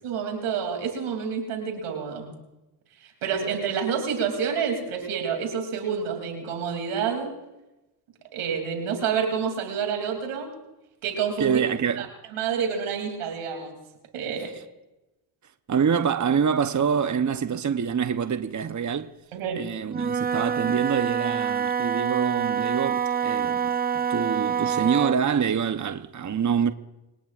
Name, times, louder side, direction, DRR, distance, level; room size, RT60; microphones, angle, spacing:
voice 1, 0.0-2.3 3.2-7.3 8.3-10.5 11.0-11.6 12.0-12.1 12.3-13.8 14.1-14.5 19.3-19.6, right 7 dB, 90° right, 3.2 m, -28 dB
voice 2, 11.4-12.1 15.7-19.1 19.6-23.7 24.1-26.7, right 7 dB, 35° right, 0.9 m, -25 dB
Wind instrument woodwind instrument, 19.9-25.3, right 7 dB, 20° right, 0.5 m, -26 dB
25.5 x 19.0 x 2.5 m
supercardioid pair, 45°, 49 cm